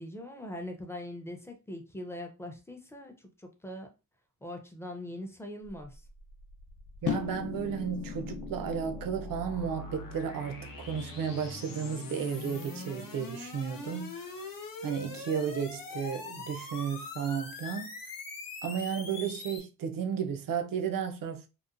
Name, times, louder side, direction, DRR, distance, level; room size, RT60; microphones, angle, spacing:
voice 1, 0.0-3.9 4.4-6.0, left 1 dB, 10° left, 0.4 m, -42 dB
sound 1, 5.7-19.6, left 3 dB, 80° left, 0.8 m, -43 dB
voice 2, 7.0-14.3 14.8-17.9 18.6-21.5, right 7 dB, 75° right, 0.5 m, -33 dB
sound 2, 7.1-13.3, left 9 dB, 65° left, 0.5 m, -41 dB
2.9 x 2.1 x 2.4 m
wide cardioid pair, 140°, 34 cm